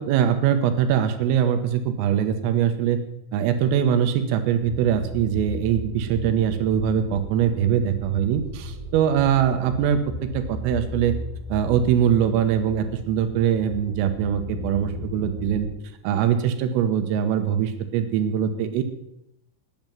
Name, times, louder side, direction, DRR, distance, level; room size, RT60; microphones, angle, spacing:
voice 1, 0.0-3.0 3.3-11.2 11.5-15.7 16.0-18.8, right 9 dB, 80° right, 8 dB, 3.6 m, -22 dB
sound 1, 4.6-15.7, left 1 dB, 50° right, 3.9 m, -36 dB
9.5 x 9.0 x 9.2 m, 0.84 s
omnidirectional pair, 6.0 m